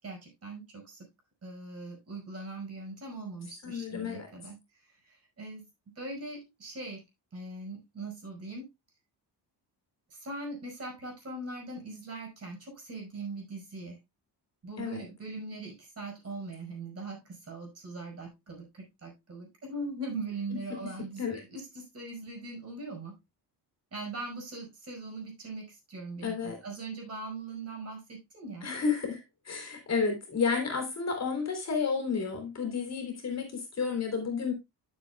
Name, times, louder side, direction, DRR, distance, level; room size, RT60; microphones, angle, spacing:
voice 1, 0.0-1.1 1.4-5.6 6.0-7.0 7.3-8.7 10.1-14.0 14.6-21.2 21.5-23.1 23.9-28.7, right 2 dB, 35° right, 5.4 m, -41 dB
voice 2, 3.6-4.3 14.8-15.0 21.2-21.4 26.2-26.6 28.6-34.5, left 5 dB, 40° left, 3.5 m, -31 dB
13.0 x 7.3 x 2.3 m
cardioid pair, 155°, 42 cm